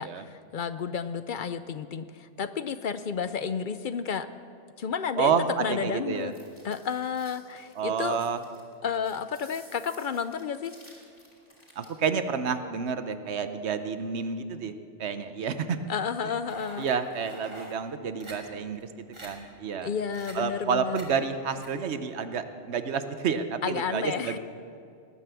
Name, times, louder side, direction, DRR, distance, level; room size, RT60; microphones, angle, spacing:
voice 1, 0.0-4.3 4.8-5.3 5.6-6.3 6.6-8.2 8.8-10.8 15.9-16.9 19.8-21.0 23.6-24.4, left 6 dB, 55° left, 12 dB, 0.6 m, -31 dB
voice 2, 5.2-6.3 7.8-8.4 11.8-15.8 16.8-19.9 20.3-24.4, right 6 dB, 65° right, 10 dB, 1.1 m, -29 dB
sound 1, 6.1-12.0, left 1 dB, 30° left, 3.4 m, -54 dB
sound 2, 16.5-17.7 18.2-18.3 18.8-18.9 19.1-19.3 20.1-20.3 21.0-21.1 21.6-21.7, right 1 dB, 25° right, 2.5 m, -45 dB
20.0 x 9.4 x 6.9 m, 2.4 s
omnidirectional pair, 1.2 m